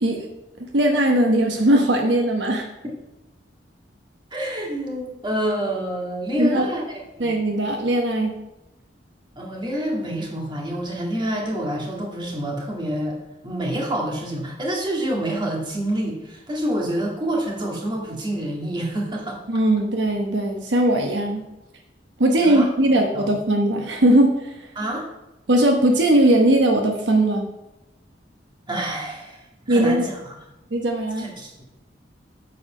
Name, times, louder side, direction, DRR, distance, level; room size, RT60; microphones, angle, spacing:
voice 1, 0.7-2.7 6.4-6.7 7.2-8.3 19.5-21.4 22.2-24.5 25.5-27.5 29.7-30.0 30.7-31.3, right 1 dB, 75° right, 2 dB, 1.1 m, -19 dB
voice 2, 4.3-7.3 9.4-13.2 13.4-19.4 22.4-22.7 23.1-23.3 24.8-25.1 28.7-30.4 31.2-31.7, right 1 dB, 25° right, -1 dB, 2.0 m, -27 dB
8.5 x 4.8 x 6.3 m, 0.96 s
head